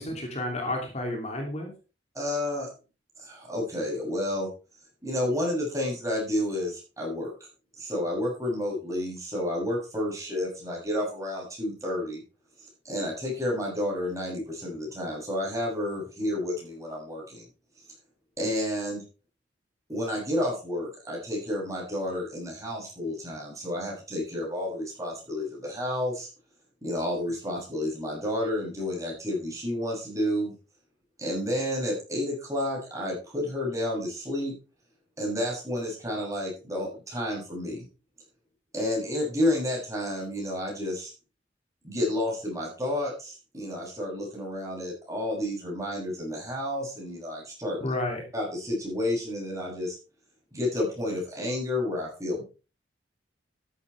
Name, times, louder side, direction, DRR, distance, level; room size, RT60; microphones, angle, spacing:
voice 1, 0.0-1.7 47.8-48.3, left 1 dB, 35° left, 2 dB, 2.9 m, -31 dB
voice 2, 2.1-2.7 3.2-4.5 5.0-7.3 7.8-12.2 12.8-17.5 18.4-19.0 19.9-26.3 26.8-30.6 31.2-34.5 35.2-37.9 38.7-41.1 41.8-47.8 48.3-50.0 50.5-52.4, left 1 dB, 15° right, -2 dB, 7.6 m, -30 dB
13.0 x 11.5 x 3.4 m, 0.33 s
head